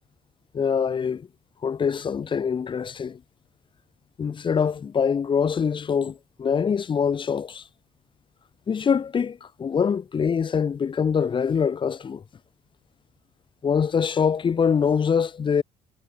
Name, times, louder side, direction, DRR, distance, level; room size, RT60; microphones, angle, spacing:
voice 1, 0.5-1.3 1.6-3.2 4.2-7.6 8.7-12.2 13.6-15.6, left 6 dB, 30° left, 0.6 m, -24 dB
cardioid pair, 110°, 17 cm